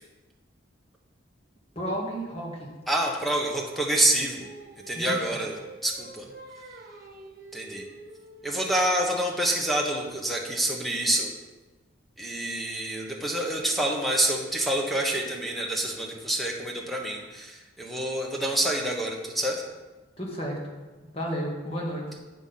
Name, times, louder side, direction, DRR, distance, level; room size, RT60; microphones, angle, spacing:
voice 1, 1.8-2.7 5.0-5.2 20.2-20.7 21.1-22.0, equal, 30° left, -2 dB, 1.9 m, -32 dB
voice 2, 2.9-4.5 4.9-5.6 5.8-6.2 7.5-7.8 8.4-11.3 12.2-19.6, right 1 dB, ahead, 0 dB, 1.1 m, -27 dB
Singing, 3.9-9.1, right 2 dB, 45° right, 1.0 m, -47 dB
8.1 x 5.6 x 5.7 m, 1.2 s
head